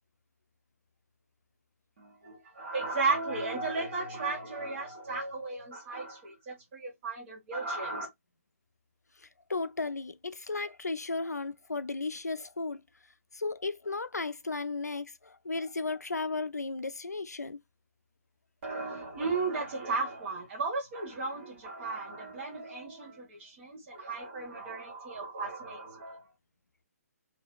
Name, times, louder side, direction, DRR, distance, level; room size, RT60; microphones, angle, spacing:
voice 1, 2.0-8.1 18.6-26.2, right 3 dB, 45° right, 1.5 m, -35 dB
voice 2, 9.2-12.8 13.3-17.6, left 3 dB, 90° left, 0.4 m, -35 dB
3.1 x 2.8 x 2.3 m
figure-of-eight pair, 135°, 9 cm